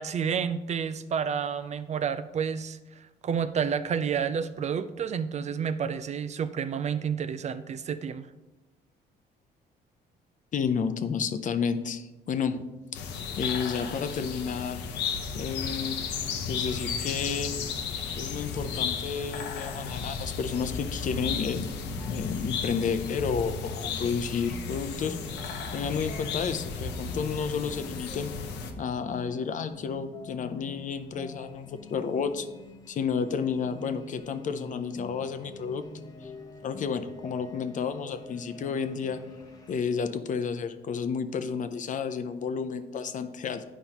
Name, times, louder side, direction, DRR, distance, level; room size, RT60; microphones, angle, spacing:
voice 1, 0.0-2.8 3.2-8.3, right 7 dB, 40° right, 13 dB, 0.4 m, -30 dB
voice 2, 10.5-12.6 12.9-13.0 13.4-14.8 15.3-16.0 16.5-17.5 18.1-21.7 22.1-25.2 25.7-28.3 28.8-32.5 32.9-35.8 36.2-36.3 36.6-39.2 39.7-43.6, left 6 dB, 45° left, 10 dB, 0.6 m, -31 dB
sound 1, 12.9-28.7, left 5 dB, 90° left, 0.8 m, -34 dB
sound 2, 21.0-39.8, left 2 dB, 20° left, 0.8 m, -45 dB
9.7 x 5.3 x 2.9 m, 1.1 s
cardioid pair, 110°, 18 cm